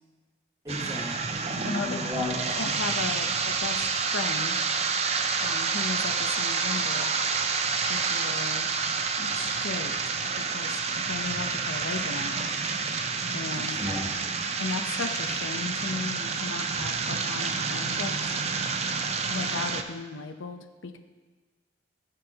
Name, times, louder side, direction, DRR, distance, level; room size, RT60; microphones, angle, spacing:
voice 1, 0.6-2.6 13.5-14.4, left 1 dB, 15° right, -2 dB, 1.8 m, -35 dB
sound 1, 0.7-19.8, right 5 dB, 35° right, 0.6 m, -29 dB
voice 2, 1.6-2.0 2.6-4.6 5.4-7.1 7.9-8.7 9.2-10.0 10.5-12.5 13.3-13.8 14.6-18.3 19.3-21.0, left 4 dB, 90° left, 7 dB, 0.8 m, -36 dB
19.0 x 7.6 x 2.9 m, 1.3 s
head